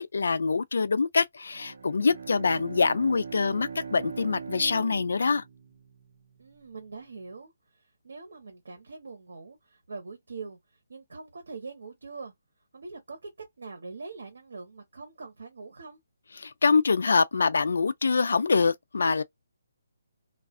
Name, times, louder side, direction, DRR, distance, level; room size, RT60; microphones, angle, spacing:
voice 1, 0.0-5.4 16.4-19.2, left 4 dB, 70° left, 0.4 m, -25 dB
Bowed string instrument, 1.5-6.3, right 6 dB, 50° right, 0.7 m, -41 dB
voice 2, 6.4-12.3 12.7-16.0, right 4 dB, 75° right, 1.0 m, -43 dB
2.4 x 2.3 x 2.3 m
hypercardioid pair, 175°, 0 cm